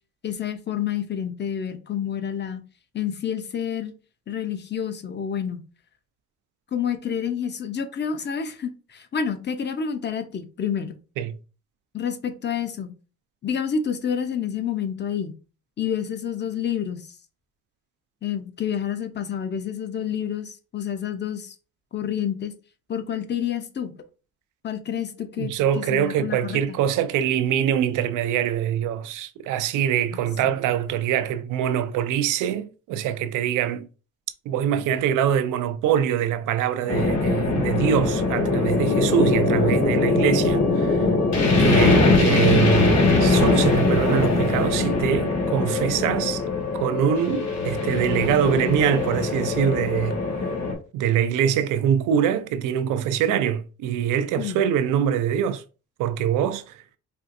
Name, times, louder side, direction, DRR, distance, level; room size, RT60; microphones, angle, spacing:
voice 1, 0.2-2.6 2.9-3.9 4.3-5.6 6.7-11.0 11.9-12.9 13.4-15.3 15.8-17.0 18.2-21.5 21.9-22.5 22.9-23.9 24.6-26.8 30.1-30.5 54.4-54.6, left 8 dB, 35° left, 0.7 m, -29 dB
voice 2, 25.4-33.9 34.5-41.1 41.6-46.4 46.7-50.2 50.9-55.6 56.0-56.8, right 9 dB, 90° right, 0.5 m, -24 dB
sound 1, 36.9-50.7, left 3 dB, 60° left, 1.6 m, -21 dB
4.3 x 2.5 x 2.6 m
cardioid pair, 90°, 30 cm